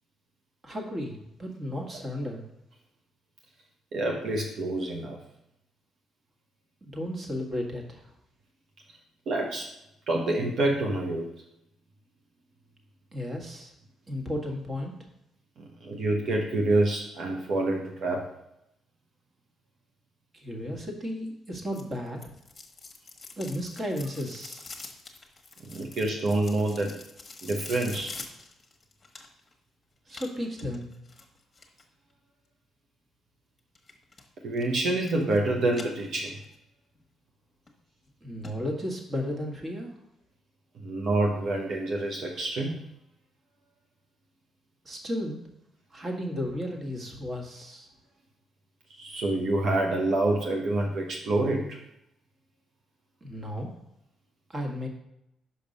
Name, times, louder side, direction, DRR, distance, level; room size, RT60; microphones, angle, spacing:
voice 1, 0.6-2.4 6.8-8.0 13.1-13.7 14.1-14.9 20.3-22.2 23.4-24.6 30.1-30.9 38.2-39.9 44.8-45.4 45.9-47.9 53.2-53.7 54.5-54.9, left 1 dB, 30° right, 1 dB, 1.7 m, -34 dB
voice 2, 3.9-5.2 9.3-9.7 10.1-11.3 15.6-18.3 25.6-27.0 27.4-28.1 34.4-36.4 40.8-42.8 49.0-51.8, right 2 dB, 65° right, 1 dB, 1.0 m, -27 dB
sound 1, 21.7-29.5 30.1-31.8 33.8-34.3 34.6-35.4 35.7-36.6 37.0-37.1 37.7-37.8 38.1-38.2 38.4-38.5 38.9-39.0, left 3 dB, 30° left, 1.3 m, -45 dB
5.8 x 5.3 x 5.3 m, 0.82 s
cardioid pair, 90°, 0 cm